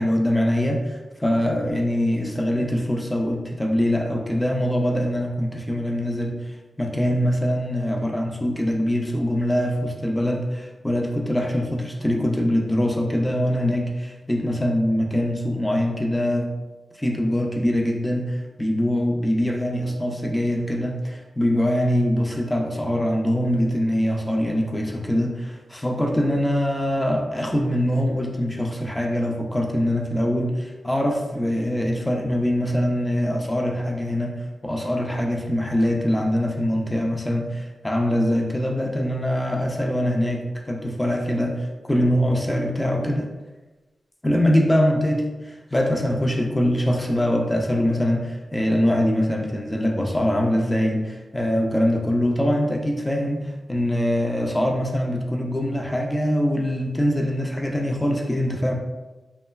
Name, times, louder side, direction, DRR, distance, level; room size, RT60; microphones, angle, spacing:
voice 1, 0.0-16.5 17.0-43.3 44.2-58.7, equal, 10° left, 1 dB, 0.3 m, -23 dB
3.0 x 2.2 x 2.2 m, 1.1 s
wide cardioid pair, 130°, 0 cm